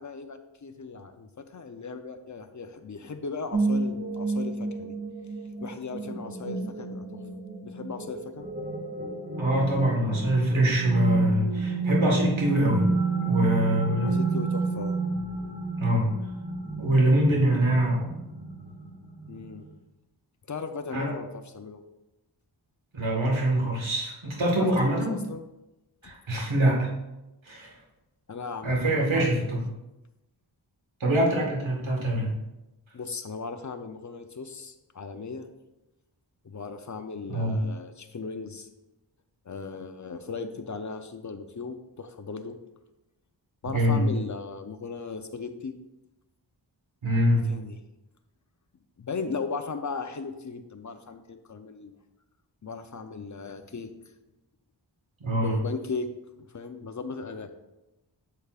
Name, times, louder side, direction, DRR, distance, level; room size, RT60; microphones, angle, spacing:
voice 1, 0.0-5.0 5.6-7.2 7.6-8.5 14.0-15.0 19.3-19.7 20.5-21.8 24.6-25.4 26.0-26.1 28.3-29.3 32.9-35.5 36.4-38.7 39.5-42.6 43.6-45.7 47.3-47.8 49.0-52.0 52.6-53.9 55.3-56.1 56.4-57.5, left 4 dB, 40° left, 7 dB, 0.7 m, -37 dB
sound 1, 3.5-19.7, right 3 dB, 30° right, 2.1 m, -30 dB
voice 2, 9.4-12.9 13.2-14.2 15.8-16.1 16.8-18.1 20.9-21.1 22.9-25.1 26.0-26.9 27.4-27.7 28.6-29.6 31.0-32.3 37.3-37.6 43.7-44.1 47.0-47.5 55.2-55.6, right 1 dB, 85° right, -1 dB, 1.7 m, -24 dB
8.2 x 6.8 x 2.5 m, 0.98 s
wide cardioid pair, 60°, 46 cm